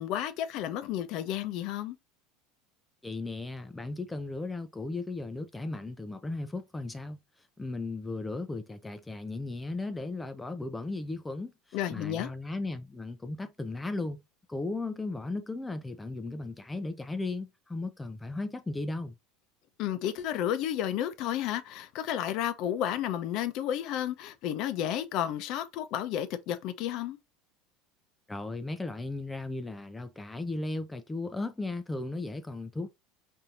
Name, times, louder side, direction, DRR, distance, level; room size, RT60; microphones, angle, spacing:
voice 1, 0.0-2.0 11.7-12.3 19.8-27.2, left 11 dB, 60° left, 0.6 m, -32 dB
voice 2, 3.0-14.2 14.5-19.1 28.3-32.9, left 2 dB, 10° left, 0.4 m, -36 dB
4.2 x 2.7 x 2.5 m
hypercardioid pair, 95°, 0 cm